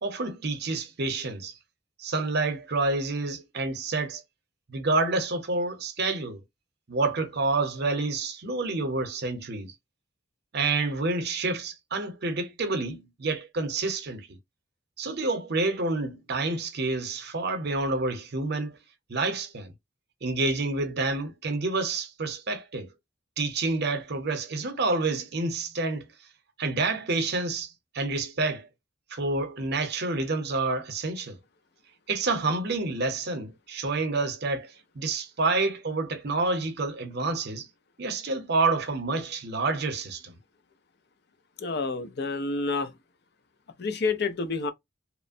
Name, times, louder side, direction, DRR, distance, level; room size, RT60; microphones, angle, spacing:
voice 1, 0.0-1.5 2.0-4.2 4.7-6.4 6.9-9.7 10.5-14.4 15.0-18.8 19.1-19.7 20.2-22.9 23.4-26.1 26.6-28.7 29.1-31.4 32.1-37.7 38.0-40.3, right 3 dB, 60° right, 0.8 m, -28 dB
voice 2, 41.6-42.9 43.8-44.7, left 4 dB, 60° left, 0.6 m, -28 dB
3.0 x 2.1 x 2.5 m
head